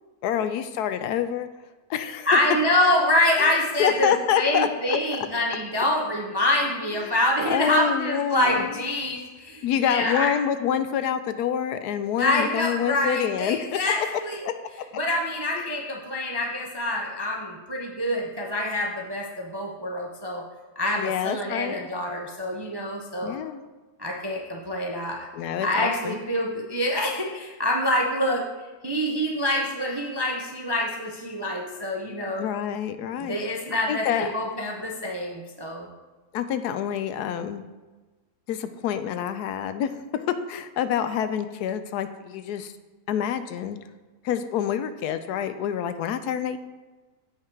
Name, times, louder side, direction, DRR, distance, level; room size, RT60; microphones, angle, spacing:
voice 1, 0.2-1.5 1.9-2.3 3.4-3.5 3.8-4.7 7.0-7.1 7.4-8.7 9.6-13.6 14.4-14.5 15.5-15.7 21.0-21.8 23.2-23.6 25.3-26.2 32.4-33.4 33.9-34.3 36.3-37.6 38.5-42.7 43.1-43.8 44.2-46.6, left 9 dB, 80° left, 10 dB, 1.1 m, -27 dB
voice 2, 2.2-10.3 12.2-14.5 14.9-20.4 20.8-23.4 24.0-25.3 25.6-28.5 28.8-32.5 33.2-35.9, left 1 dB, 35° right, 0 dB, 0.4 m, -26 dB
7.9 x 5.8 x 4.5 m, 1.2 s
omnidirectional pair, 1.7 m